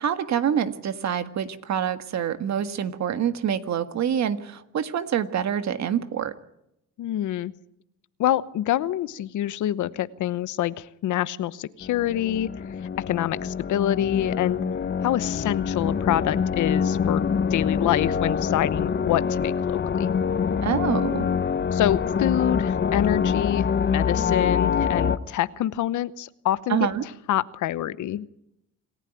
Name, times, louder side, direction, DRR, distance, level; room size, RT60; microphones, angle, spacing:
voice 1, 0.0-6.3 20.6-21.3 26.7-27.0, right 9 dB, 65° right, 10 dB, 1.7 m, -26 dB
voice 2, 7.0-7.5 8.2-12.5 13.0-14.6 15.0-17.2 17.5-20.1 21.7-26.9 27.3-28.3, left 12 dB, 80° left, 16 dB, 1.0 m, -26 dB
sound 1, 11.8-25.2, left 6 dB, 35° left, 1.1 m, -25 dB
27.0 x 15.0 x 9.2 m, 0.82 s
cardioid pair, 90°, 30 cm